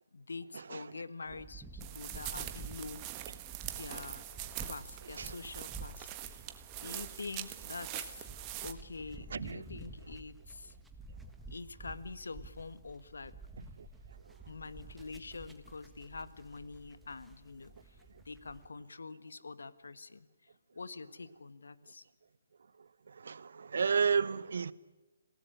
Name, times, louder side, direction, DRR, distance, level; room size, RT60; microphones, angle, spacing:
voice 1, 0.1-3.0 3.6-4.3 4.6-6.4 6.8-8.2 8.6-10.7 11.5-13.3 14.5-20.3 20.7-22.0, left 4 dB, 65° left, 1.5 m, -46 dB
sound 1, 1.3-18.7, right 3 dB, 5° right, 1.6 m, -51 dB
sound 2, 1.8-8.7, right 14 dB, 25° right, 1.4 m, -43 dB
voice 2, 9.3-9.6 23.1-24.7, right 6 dB, 60° right, 1.0 m, -32 dB
27.5 x 17.5 x 9.9 m
figure-of-eight pair, 140°, 0 cm